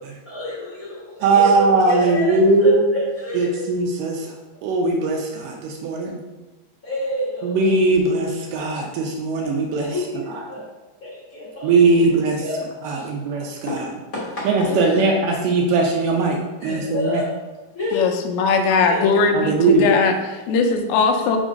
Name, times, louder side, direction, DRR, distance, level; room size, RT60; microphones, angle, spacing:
voice 1, 0.2-3.6 6.8-7.6 8.5-8.8 9.8-10.6 11.0-13.1 13.7-13.8 14.1-15.1 16.6-17.3 17.7-18.1 18.9-19.2 21.1-21.4, left 1 dB, 55° left, -9 dB, 0.9 m, -29 dB
voice 2, 1.2-2.8 3.4-4.3 4.6-6.2 7.4-9.9 11.6-12.4 12.8-13.9 14.5-17.2 19.3-19.9, right 3 dB, 80° right, 1 dB, 2.2 m, -19 dB
voice 3, 17.9-21.4, left 4 dB, 85° left, 4 dB, 1.7 m, -19 dB
5.1 x 3.7 x 5.1 m, 1.1 s
omnidirectional pair, 3.9 m